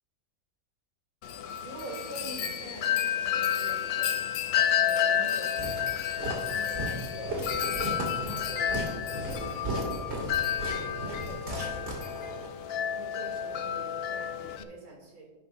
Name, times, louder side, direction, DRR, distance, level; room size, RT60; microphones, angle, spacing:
Wind chime, 1.2-14.6, left 9 dB, 80° left, 0.5 m, -31 dB
voice 1, 1.6-4.3 4.8-5.9 6.4-7.5 8.2-9.8 10.5-10.6 10.9-15.2, right 1 dB, 70° right, -1 dB, 2.9 m, -45 dB
Walk footsteps, 5.6-12.5, right 1 dB, 45° right, 2.7 m, -36 dB
17.5 x 5.9 x 2.6 m, 1.3 s
omnidirectional pair, 1.6 m